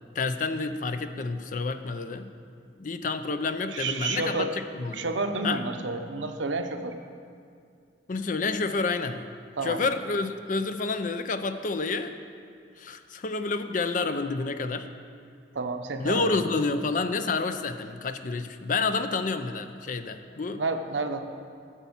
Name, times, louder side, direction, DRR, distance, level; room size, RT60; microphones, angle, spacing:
voice 1, 0.1-2.3 2.8-5.0 5.4-5.6 8.1-9.2 9.6-12.1 12.8-14.9 16.0-20.6, left 3 dB, 45° left, 9 dB, 0.5 m, -29 dB
voice 2, 3.7-4.5 4.9-7.0 9.6-9.8 15.5-16.4 20.6-21.2, right 3 dB, 90° right, 6 dB, 0.8 m, -30 dB
10.0 x 7.0 x 7.2 m, 2.3 s
head